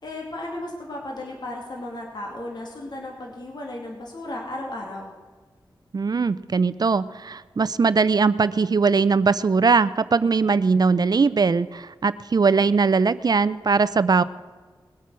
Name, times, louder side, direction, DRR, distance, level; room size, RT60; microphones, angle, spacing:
voice 1, 0.0-5.1, left 1 dB, 60° left, -1 dB, 2.6 m, -34 dB
voice 2, 5.9-14.2, right 4 dB, 50° right, 16 dB, 0.5 m, -20 dB
20.5 x 8.3 x 6.2 m, 1.5 s
wide cardioid pair, 80°, 8 cm